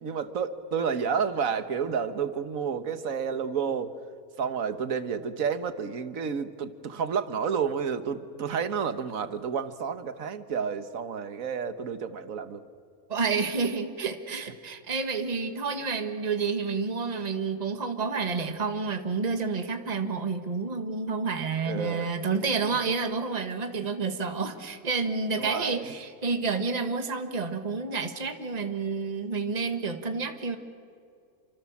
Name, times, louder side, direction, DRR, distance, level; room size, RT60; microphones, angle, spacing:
voice 1, 0.0-3.9 4.4-12.6 21.6-22.1 25.4-25.9, right 6 dB, 70° right, 11 dB, 1.6 m, -30 dB
voice 2, 13.1-30.6, right 4 dB, 30° right, 7 dB, 1.6 m, -29 dB
28.5 x 25.0 x 7.3 m, 2.3 s
omnidirectional pair, 1.5 m